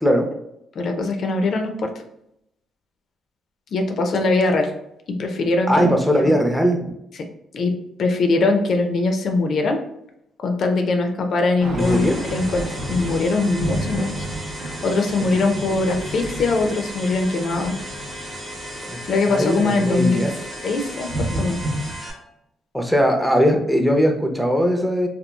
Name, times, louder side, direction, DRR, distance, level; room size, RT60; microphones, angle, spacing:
voice 1, 0.8-1.9 3.7-4.7 5.1-5.9 6.2-6.3 7.5-7.7 8.0-9.8 10.4-14.3 14.8-17.7 19.1-20.3 20.6-21.6, left 3 dB, 60° left, 5 dB, 0.4 m, -21 dB
voice 2, 5.7-6.9 11.7-12.3 15.2-15.3 15.7-15.8 18.9-19.0 19.3-20.3 22.7-25.1, equal, ahead, 3 dB, 0.5 m, -19 dB
Thunder / Rain, 11.6-22.0, right 1 dB, 75° right, 0.8 m, -32 dB
sound 1, 11.8-22.1, equal, 20° right, 0.8 m, -35 dB
2.9 x 2.3 x 2.2 m, 0.79 s
cardioid pair, 90°, 0 cm